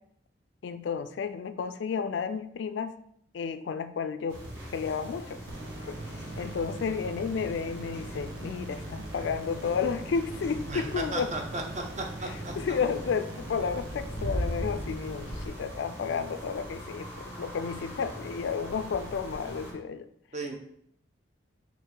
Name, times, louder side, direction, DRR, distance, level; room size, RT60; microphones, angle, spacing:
voice 1, 0.6-3.0 3.3-4.4 4.7-5.4 5.9-6.0 6.4-11.3 12.2-17.1 17.4-20.1, left 6 dB, 65° left, 11 dB, 0.3 m, -32 dB
sound 1, 4.3-19.7, equal, 60° right, 1.8 m, -40 dB
sound 2, 5.5-15.5, right 1 dB, 80° right, 0.8 m, -43 dB
voice 2, 10.7-12.5 20.3-20.5, right 2 dB, 35° right, 2 dB, 0.6 m, -35 dB
5.4 x 2.5 x 3.8 m, 0.69 s
head